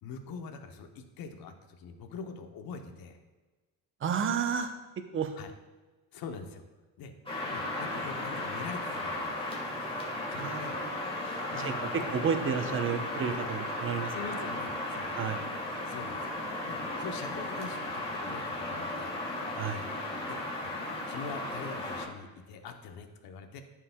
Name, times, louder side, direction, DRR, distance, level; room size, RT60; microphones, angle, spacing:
voice 1, 0.0-3.2 5.4-5.5 6.1-6.6 7.0-7.1 7.5-9.5 10.3-10.8 11.5-12.2 14.1-15.1 15.8-16.3 16.6-19.2 20.2-20.7 21.1-23.6, left 5 dB, 70° left, 6 dB, 0.9 m, -43 dB
voice 2, 4.0-4.7 5.1-5.3 10.3-10.9 11.5-11.7 12.1-14.1 15.2-15.4 19.6-19.9, right 7 dB, 35° right, 7 dB, 0.7 m, -31 dB
sound 1, 7.3-22.1, left 1 dB, 15° left, 1.5 m, -35 dB
10.0 x 4.6 x 2.2 m, 1.2 s
cardioid pair, 100°, 37 cm